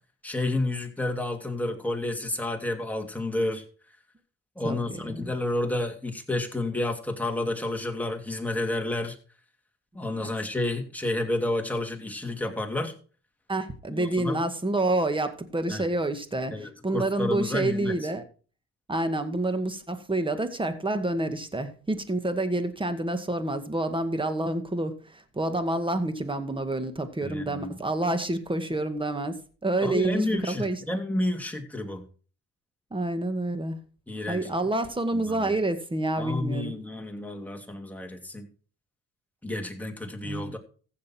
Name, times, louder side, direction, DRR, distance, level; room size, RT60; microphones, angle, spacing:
voice 1, 0.2-3.6 4.6-9.2 9.9-12.9 13.9-14.4 15.7-15.9 16.5-18.0 27.2-27.8 29.8-32.0 34.1-34.5 35.3-35.5 36.2-38.5 39.4-40.6, left 2 dB, 5° left, 3 dB, 2.9 m, -30 dB
voice 2, 4.6-5.3 13.5-18.2 18.9-30.8 32.9-33.8 34.3-36.7 40.2-40.6, right 2 dB, 15° right, 9 dB, 2.0 m, -28 dB
15.0 x 6.8 x 4.5 m, 0.39 s
cardioid pair, 90°, 30 cm